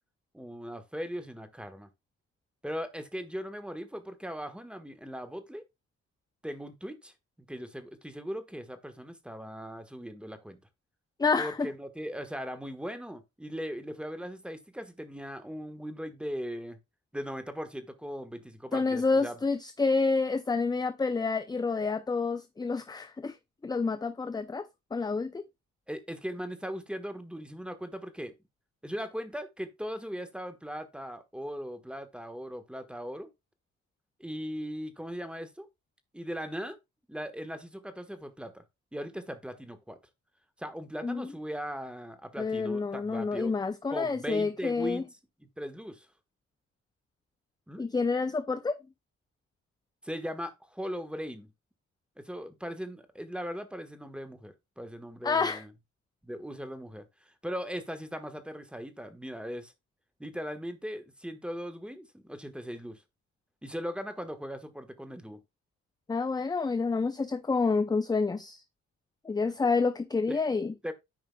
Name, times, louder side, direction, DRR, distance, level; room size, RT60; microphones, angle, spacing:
voice 1, 0.3-1.9 2.6-5.6 6.4-7.1 7.5-10.6 11.4-16.8 17.1-19.4 25.9-28.4 28.8-33.3 34.2-35.7 36.1-36.8 37.1-38.6 38.9-40.0 40.6-43.5 43.9-45.1 45.4-46.1 47.7-47.8 50.0-51.5 52.2-55.7 56.2-59.7 60.2-63.0 63.6-65.4 70.3-70.4 70.8-70.9, equal, 5° right, 1.3 m, -39 dB
voice 2, 11.2-11.7 18.7-23.4 23.6-25.5 41.0-41.3 42.4-45.0 47.8-48.8 55.2-55.6 66.1-68.6 69.2-70.7, left 4 dB, 15° left, 0.5 m, -28 dB
13.0 x 4.9 x 2.3 m
cardioid pair, 90°, 30 cm